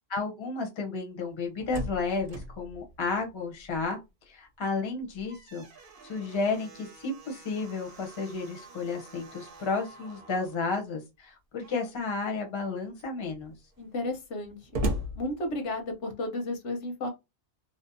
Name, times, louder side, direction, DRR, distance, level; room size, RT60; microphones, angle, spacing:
voice 1, 0.1-4.0 4.3-5.6 6.0-13.5, left 4 dB, 30° left, 0.6 m, -32 dB
Slam, 1.3-4.1 4.4-4.5 5.0-10.6 11.5-12.1 12.6-12.7 12.9-16.0, right 1 dB, 55° right, 0.8 m, -40 dB
voice 2, 13.8-14.6 15.2-17.1, left 1 dB, 85° left, 1.1 m, -33 dB
2.7 x 2.1 x 2.5 m
omnidirectional pair, 1.2 m